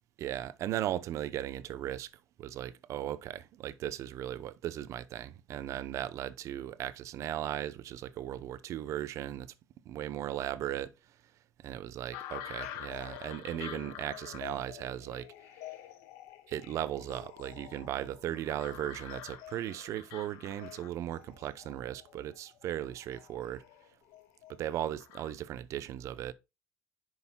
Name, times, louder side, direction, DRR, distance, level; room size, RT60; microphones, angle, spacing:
voice 1, 0.2-2.1 2.4-9.5 9.9-10.9 11.6-15.3 16.5-23.6 24.5-26.3, right 12 dB, 60° right, 0.7 m, -37 dB
sound 1, 12.1-25.3, left 11 dB, 75° left, 1.4 m, -47 dB
9.4 x 6.3 x 2.2 m
supercardioid pair, 80°, 6 cm